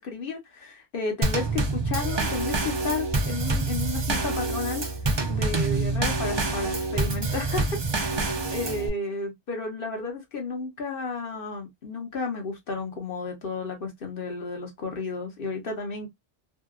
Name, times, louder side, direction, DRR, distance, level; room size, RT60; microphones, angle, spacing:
voice 1, 0.0-4.8 5.3-16.1, left 3 dB, 55° left, 0.9 m, -32 dB
Drum kit / Snare drum / Bass drum, 1.2-8.9, right 3 dB, 40° right, 0.3 m, -27 dB
2.7 x 2.2 x 2.3 m
omnidirectional pair, 1.2 m